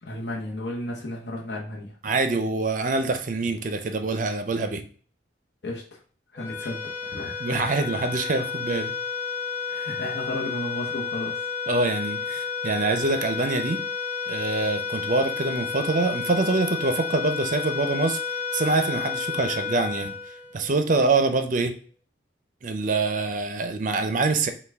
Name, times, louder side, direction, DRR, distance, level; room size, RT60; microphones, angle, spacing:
voice 1, 0.0-2.0 5.6-6.0 6.3-7.6 9.7-11.5, left 1 dB, 65° left, -2 dB, 0.8 m, -34 dB
voice 2, 2.0-4.8 7.4-8.9 11.7-13.8 14.3-18.2 18.5-20.1 20.5-21.7 22.6-24.5, right 3 dB, 45° right, 8 dB, 0.5 m, -25 dB
sound 1, 6.4-20.9, left 6 dB, 15° left, 0.8 m, -31 dB
5.5 x 2.3 x 3.4 m, 0.44 s
head